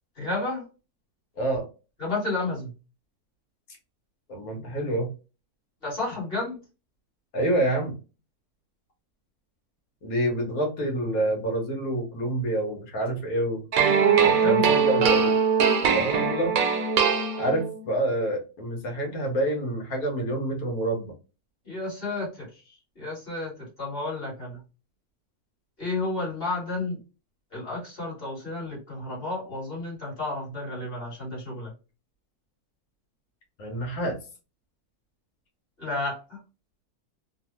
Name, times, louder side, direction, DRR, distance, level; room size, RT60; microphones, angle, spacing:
voice 1, 0.2-0.7 2.0-2.7 5.8-6.6 14.2-15.0 21.7-22.5 23.0-24.6 25.8-27.0 27.5-31.7 35.8-36.4, left 2 dB, 40° left, -4 dB, 1.7 m, -31 dB
voice 2, 4.3-5.1 7.3-7.9 10.0-13.6 14.1-15.3 15.9-16.6 17.4-21.1 33.6-34.2, right 1 dB, 75° left, 1 dB, 1.4 m, -27 dB
sound 1, 13.7-17.8, right 6 dB, 75° right, 1.1 m, -21 dB
3.2 x 2.0 x 2.9 m, 0.32 s
omnidirectional pair, 1.6 m